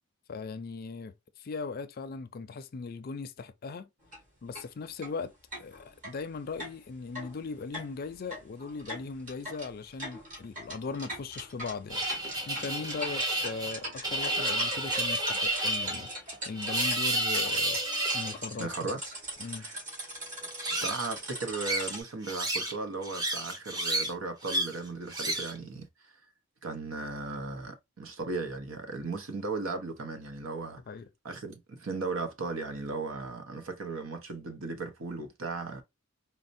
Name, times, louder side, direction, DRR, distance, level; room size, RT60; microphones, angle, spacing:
voice 1, 0.3-3.9 4.4-5.3 5.6-12.1 12.5-16.1 16.5-17.8 18.1-18.7 19.4-19.7 30.9-31.1, left 4 dB, 50° left, 0.4 m, -39 dB
sound 1, 4.0-4.2 4.5-4.7 5.0-5.1 5.5-22.0, right 1 dB, 40° right, 2.0 m, -41 dB
sound 2, 11.9-18.4 20.5-21.1 21.6-22.8 23.0-24.1 24.4-24.8 25.1-25.6, right 1 dB, 20° right, 0.7 m, -31 dB
voice 2, 18.6-19.1 19.6-19.8 20.7-25.9 26.6-30.8 31.2-35.8, right 3 dB, 85° right, 0.7 m, -36 dB
4.2 x 2.1 x 2.6 m
head